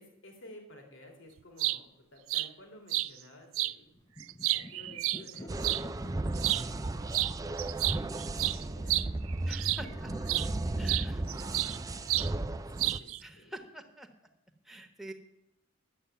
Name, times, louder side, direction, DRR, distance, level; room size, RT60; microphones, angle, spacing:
voice 1, 0.0-3.9 4.4-9.0 9.5-13.6, left 1 dB, 70° left, 2 dB, 2.8 m, -55 dB
sound 1, 1.4-1.8 2.3-2.5 2.9-3.1 3.5-3.7 4.2-5.8 6.4-6.6 7.1-7.3 7.6-9.9 10.3-10.5 10.9-11.8 12.1-12.3 12.8-13.2, right 17 dB, 85° right, 0.4 m, -30 dB
sound 2, 3.8-13.5, equal, 20° left, 0.8 m, -50 dB
sound 3, 5.5-13.0, right 2 dB, 15° right, 0.4 m, -35 dB
voice 2, 9.5-10.1 10.8-11.1 13.2-14.1 14.7-15.1, right 1 dB, ahead, 2 dB, 1.3 m, -46 dB
12.0 x 8.5 x 7.0 m, 0.85 s
head